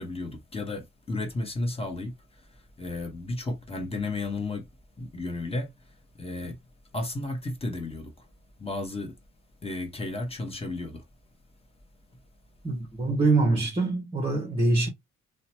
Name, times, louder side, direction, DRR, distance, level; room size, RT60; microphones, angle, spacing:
voice 1, 0.0-2.1 2.8-4.7 5.0-5.7 6.2-6.6 6.9-8.3 8.6-9.1 9.6-11.0, left 2 dB, 20° left, 0.9 m, -33 dB
voice 2, 12.6-14.9, right 3 dB, 15° right, 0.8 m, -24 dB
2.9 x 2.1 x 2.8 m
cardioid pair, 90°, 30 cm